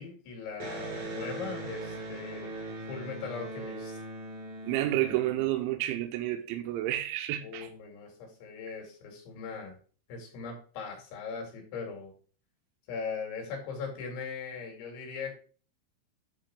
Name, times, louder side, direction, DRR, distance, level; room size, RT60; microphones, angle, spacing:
voice 1, 0.0-2.5 2.9-4.0 7.4-9.8 10.1-12.1 12.9-15.4, left 5 dB, 75° left, 4.7 m, -39 dB
Electric guitar, 0.6-6.0, right 2 dB, 55° right, 1.3 m, -40 dB
voice 2, 4.6-7.7, right 14 dB, 85° right, 3.1 m, -30 dB
10.5 x 3.8 x 5.1 m
omnidirectional pair, 5.5 m